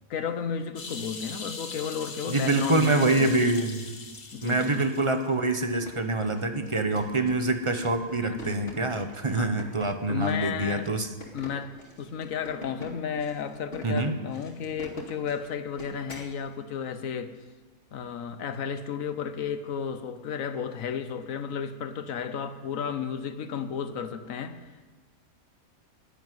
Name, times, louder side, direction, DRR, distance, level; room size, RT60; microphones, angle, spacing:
voice 1, 0.1-3.4 4.3-4.9 8.3-8.6 9.3-9.5 10.1-10.9 11.3-17.3 17.9-24.9, left 7 dB, 70° left, 10 dB, 1.3 m, -33 dB
sound 1, 0.8-5.3 5.6-5.7, left 4 dB, 85° left, 2.1 m, -40 dB
voice 2, 2.3-3.9 4.4-11.1 13.8-14.1, right 2 dB, 25° right, 7 dB, 0.9 m, -25 dB
sound 2, 5.6-16.3, left 1 dB, 45° left, 2.5 m, -46 dB
11.0 x 10.5 x 9.2 m, 1.3 s
omnidirectional pair, 1.5 m